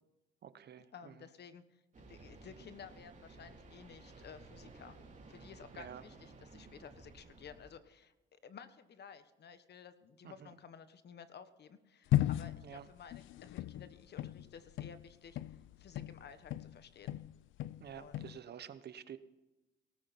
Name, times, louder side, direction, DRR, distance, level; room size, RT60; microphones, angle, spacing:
voice 1, 0.4-1.1 5.7-6.0 10.2-10.5 12.6-12.9 17.8-19.2, right 9 dB, 55° right, 13 dB, 1.0 m, -49 dB
voice 2, 0.9-5.0 5.3-17.2 17.9-18.3, left 6 dB, 55° left, 11 dB, 1.3 m, -54 dB
sound 1, 1.9-7.7, right 3 dB, 40° right, 3.4 m, -56 dB
sound 2, 12.1-16.8 17.1-18.4, left 14 dB, 80° left, 0.4 m, -36 dB
18.0 x 13.5 x 4.3 m, 1.0 s
cardioid pair, 90°, 20 cm